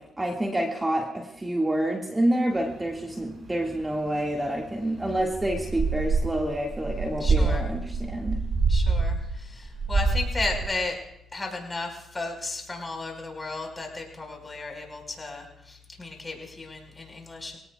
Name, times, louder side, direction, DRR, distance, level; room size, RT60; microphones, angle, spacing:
voice 1, 0.0-8.5, right 1 dB, 15° right, 0 dB, 1.9 m, -28 dB
sound 1, 2.6-9.3 9.6-10.6, right 4 dB, 40° right, 6.1 m, -27 dB
voice 2, 7.2-7.7 8.7-11.0 11.3-17.6, left 3 dB, 20° left, 2 dB, 4.7 m, -34 dB
26.5 x 17.5 x 2.3 m, 0.80 s
cardioid pair, 85°, 0 cm